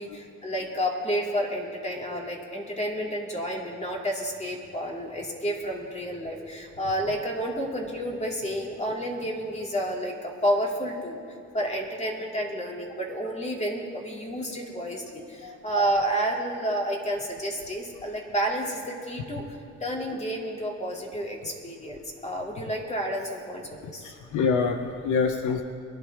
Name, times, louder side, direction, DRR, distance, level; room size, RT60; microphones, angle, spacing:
voice 1, 0.0-11.2 11.5-19.4 19.8-24.1, equal, 20° left, -1 dB, 3.0 m, -30 dB
voice 2, 24.0-25.6, left 5 dB, 80° left, 5 dB, 1.0 m, -26 dB
23.5 x 11.5 x 3.7 m, 2.4 s
cardioid pair, 90°, 30 cm